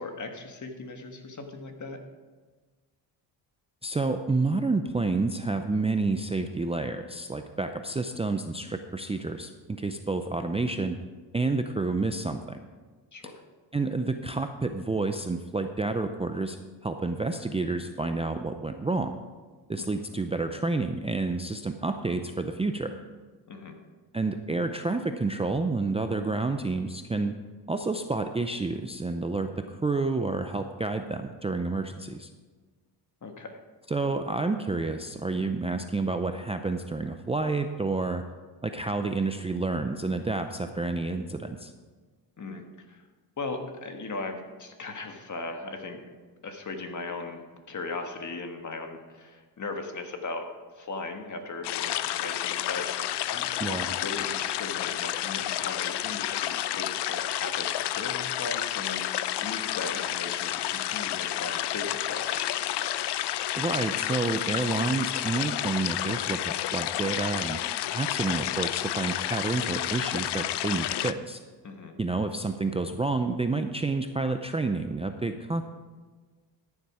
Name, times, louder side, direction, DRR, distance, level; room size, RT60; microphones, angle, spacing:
voice 1, 0.0-2.0 7.6-7.7 13.1-13.4 19.7-19.9 23.5-23.8 33.2-33.6 42.4-43.0 43.4-46.0 46.4-50.5 50.7-52.9 53.3-59.0 59.4-62.6 71.6-72.0, left 3 dB, 40° left, 5 dB, 1.6 m, -38 dB
voice 2, 3.8-11.0 11.3-12.6 13.7-16.6 16.8-19.2 19.7-22.9 24.1-27.3 27.7-32.3 33.9-38.2 38.6-41.7 53.6-53.9 63.6-67.6 67.9-71.4 72.0-75.7, right 3 dB, 15° right, 6 dB, 0.5 m, -29 dB
sound 1, 51.6-71.1, left 13 dB, 65° left, 0.6 m, -30 dB
13.5 x 7.2 x 4.9 m, 1.4 s
cardioid pair, 95°, 44 cm